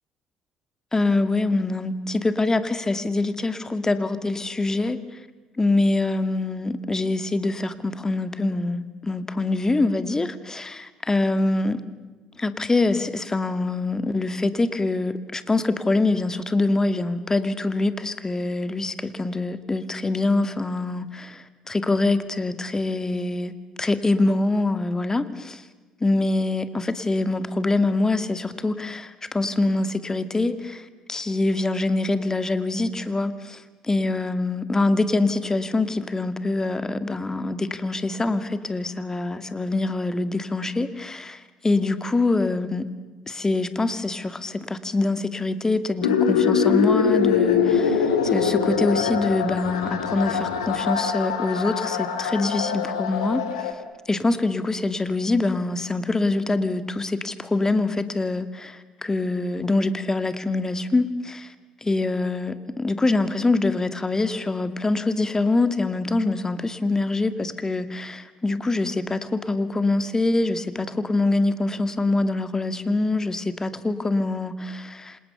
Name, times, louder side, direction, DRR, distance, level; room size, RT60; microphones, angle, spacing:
voice 1, 0.9-5.0 5.6-11.8 12.4-23.5 23.8-25.6 26.0-33.6 33.9-42.9 43.3-53.7 54.1-61.5 61.8-75.2, left 2 dB, 20° left, 2.2 m, -24 dB
sound 1, 46.0-53.7, left 7 dB, 80° left, 2.2 m, -23 dB
28.0 x 27.0 x 7.0 m
figure-of-eight pair, 50°, 3 cm